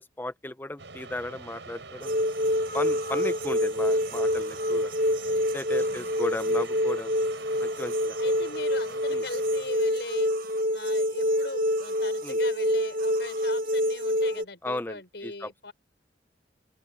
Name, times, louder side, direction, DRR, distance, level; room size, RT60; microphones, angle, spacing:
voice 1, 0.0-2.2 2.7-4.9 5.5-7.1 7.6-8.2 9.1-9.2 12.2-12.4 14.6-15.5, left 1 dB, 10° left, 0.7 m, -35 dB
sound 1, 0.8-11.0, right 4 dB, 90° right, 5.4 m, -45 dB
sound 2, 2.0-14.4, equal, 50° right, 1.5 m, -26 dB
voice 2, 5.8-6.2 8.2-10.3 10.7-15.7, left 2 dB, 70° left, 6.3 m, -40 dB
open air
head